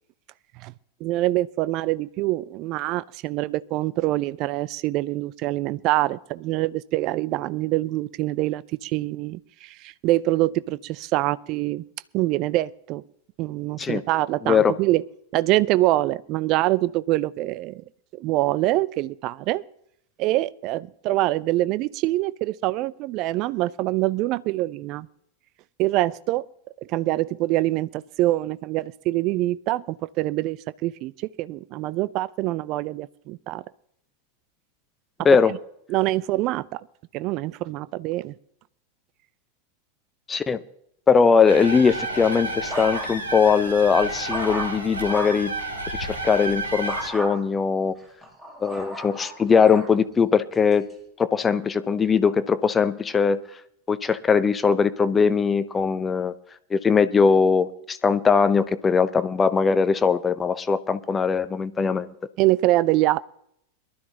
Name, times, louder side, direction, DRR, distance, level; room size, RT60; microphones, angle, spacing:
voice 1, 1.0-11.8 12.1-13.0 13.4-15.0 15.3-17.8 18.1-19.6 20.2-25.1 25.8-26.5 26.8-33.6 35.5-35.6 35.9-36.8 37.1-38.3 62.4-63.2, right 17 dB, 40° right, 18 dB, 0.4 m, -25 dB
voice 2, 40.3-40.6 41.1-45.5 46.0-47.9 48.6-50.9 51.2-53.4 53.9-56.3 56.7-62.1, left 5 dB, 15° left, 13 dB, 0.7 m, -20 dB
sound 1, 41.5-47.1, right 2 dB, 75° right, 3.1 m, -31 dB
sound 2, 42.0-43.4 43.8-45.5 46.9-47.3 48.0-49.9 50.5-50.9, equal, 15° right, 4.4 m, -35 dB
22.5 x 12.5 x 2.9 m, 0.74 s
figure-of-eight pair, 90°, 0 cm